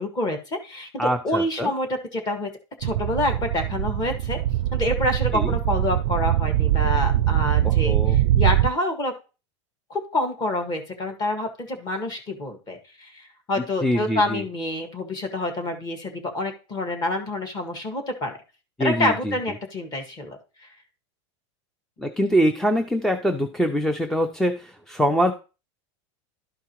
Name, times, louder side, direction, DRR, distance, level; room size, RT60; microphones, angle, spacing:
voice 1, 0.0-1.9 2.1-2.5 2.8-4.4 4.7-9.1 9.9-18.4 18.8-20.4, left 1 dB, 25° left, 5 dB, 1.6 m, -27 dB
voice 2, 1.0-1.7 5.3-5.5 7.8-8.2 13.8-14.4 18.8-19.4 22.0-25.3, equal, 5° left, 7 dB, 0.4 m, -23 dB
sound 1, 2.8-8.7, right 13 dB, 85° right, 0.4 m, -22 dB
12.0 x 4.7 x 3.0 m, 0.32 s
supercardioid pair, 150°, 15 cm